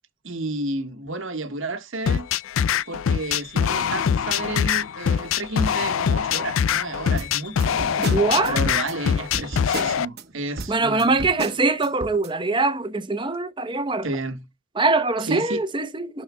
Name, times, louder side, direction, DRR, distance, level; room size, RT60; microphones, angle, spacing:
voice 1, 0.2-2.3 2.9-8.2 8.5-11.1 14.0-14.4 15.3-15.6, right 2 dB, 70° right, 1.4 m, -31 dB
sound 1, 2.1-10.1, left 7 dB, 70° left, 0.4 m, -23 dB
sound 2, 7.1-10.2 10.6-12.3, right 2 dB, 50° right, 1.1 m, -34 dB
voice 2, 8.0-8.6 10.7-14.1 14.8-16.2, right 3 dB, 20° right, 0.9 m, -23 dB
12.0 x 4.3 x 2.2 m
head